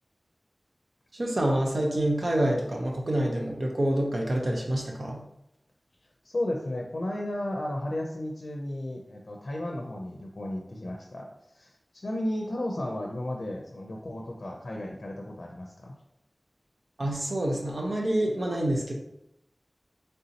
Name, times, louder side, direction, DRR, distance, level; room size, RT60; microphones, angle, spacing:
voice 1, 1.1-5.2 17.0-18.9, right 1 dB, 70° right, 0 dB, 0.8 m, -27 dB
voice 2, 6.2-15.9, left 1 dB, 85° left, 0 dB, 0.4 m, -34 dB
3.4 x 2.8 x 4.0 m, 0.81 s
wide cardioid pair, 60°, 0 cm